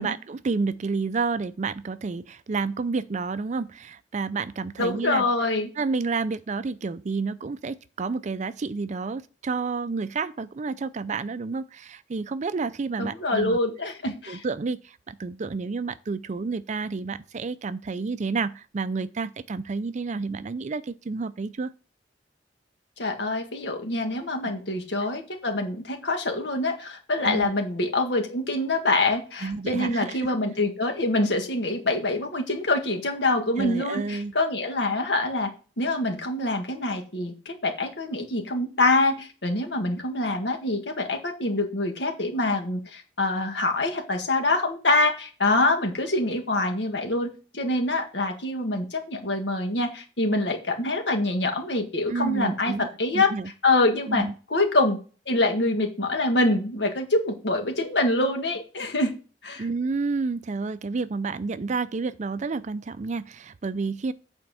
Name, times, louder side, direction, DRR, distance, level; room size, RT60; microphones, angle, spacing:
voice 1, 0.0-5.2 5.8-13.6 14.3-21.7 24.4-24.5 27.2-27.5 29.4-30.3 33.6-34.3 52.1-53.5 54.1-54.3 59.6-64.1, right 4 dB, 40° right, 0.4 m, -30 dB
voice 2, 4.8-5.7 13.0-14.4 23.0-35.5 35.8-47.3 47.5-52.7 53.0-53.3 53.6-55.0 55.3-59.1 59.4-59.7, left 2 dB, 70° left, 1.7 m, -25 dB
8.7 x 4.3 x 5.6 m
head